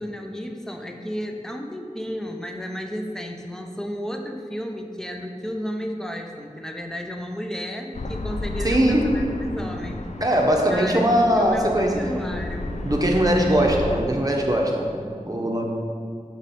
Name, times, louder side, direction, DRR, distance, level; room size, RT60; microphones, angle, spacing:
voice 1, 0.0-10.1 10.7-11.1 11.4-12.7, equal, 5° left, 3 dB, 0.6 m, -32 dB
sound 1, 7.9-14.0, left 2 dB, 60° left, 0.5 m, -32 dB
voice 2, 8.6-9.1 10.2-12.1 12.8-14.9 15.2-15.6, equal, 25° right, 0 dB, 1.0 m, -20 dB
6.3 x 5.3 x 4.2 m, 2.3 s
wide cardioid pair, 45°, 14 cm